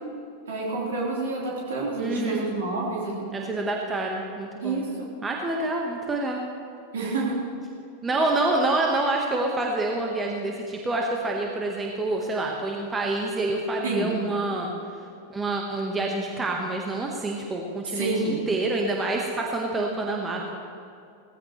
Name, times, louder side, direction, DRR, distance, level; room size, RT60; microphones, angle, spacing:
voice 1, 0.5-3.3 4.6-5.1 6.9-7.4 8.1-8.3 13.8-14.1 17.9-18.4, right 3 dB, 60° right, -4 dB, 3.7 m, -28 dB
voice 2, 2.0-2.4 3.3-4.8 5.2-6.4 8.0-14.7 15.3-20.6, right 2 dB, 15° right, 0 dB, 1.3 m, -27 dB
17.5 x 15.0 x 3.2 m, 2.5 s
figure-of-eight pair, 90°, 0 cm